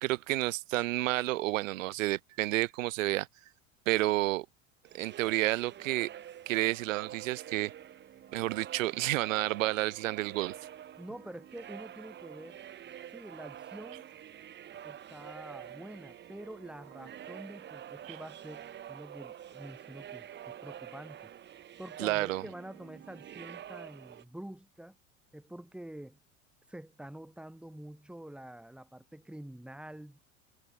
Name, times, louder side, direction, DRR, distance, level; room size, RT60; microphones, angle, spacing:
voice 1, 0.0-3.3 3.9-4.5 4.9-6.1 6.5-7.7 8.3-10.5 18.1-18.2 22.0-22.4, right 17 dB, 75° right, 0.5 m, -30 dB
sound 1, 4.8-24.2, right 10 dB, 30° right, 1.0 m, -47 dB
voice 2, 11.0-12.6 13.1-14.1 14.8-21.3 21.8-25.0 25.3-26.2 26.7-30.2, right 1 dB, 5° right, 2.3 m, -47 dB
hypercardioid pair, 85°, 39 cm